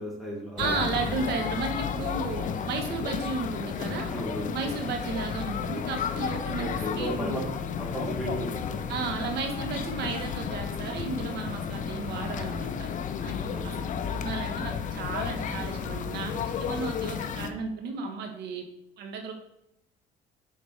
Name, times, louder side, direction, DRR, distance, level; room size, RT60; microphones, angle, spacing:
voice 1, 0.0-0.8 4.0-4.7 6.6-7.4 7.7-9.0 10.7-11.4 13.5-13.8 16.7-17.1, equal, ahead, -4 dB, 2.8 m, -36 dB
sound 1, 0.6-17.5, left 7 dB, 50° left, 0.7 m, -32 dB
voice 2, 0.6-4.1 4.5-6.7 7.0-7.5 8.9-12.9 13.2-18.7 19.0-19.3, right 4 dB, 75° right, 5 dB, 1.1 m, -34 dB
8.6 x 5.2 x 3.3 m, 0.77 s
cardioid pair, 110°, 17 cm